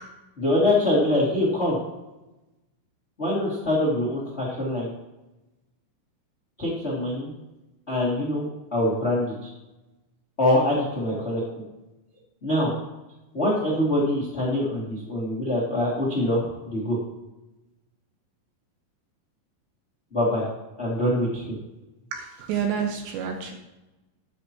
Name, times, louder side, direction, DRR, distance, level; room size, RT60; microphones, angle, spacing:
voice 1, 0.4-1.8 3.2-4.9 6.6-7.3 7.9-9.5 10.4-11.4 12.4-12.7 13.3-17.0 20.1-20.5 20.8-21.4, left 1 dB, 85° left, -5 dB, 0.5 m, -24 dB
voice 2, 22.1-23.5, right 7 dB, 75° right, 3 dB, 2.8 m, -29 dB
12.5 x 9.6 x 2.9 m, 1.0 s
omnidirectional pair, 5.8 m